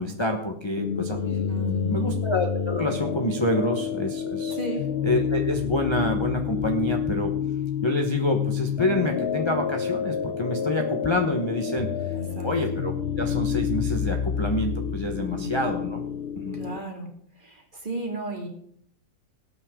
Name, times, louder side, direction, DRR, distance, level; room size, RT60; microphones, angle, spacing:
voice 1, 0.0-1.6 1.9-4.6 5.0-7.3 7.8-11.9 12.4-16.0 16.3-16.6, left 1 dB, 20° left, 2 dB, 0.9 m, -27 dB
sound 1, 0.8-16.8, left 8 dB, 85° left, 0.5 m, -28 dB
voice 2, 1.5-2.1 4.5-4.8 12.1-12.5 15.2-15.6 16.5-17.1 17.4-18.5, right 2 dB, 25° right, 2 dB, 2.4 m, -34 dB
18.0 x 9.0 x 3.8 m, 0.64 s
omnidirectional pair, 2.0 m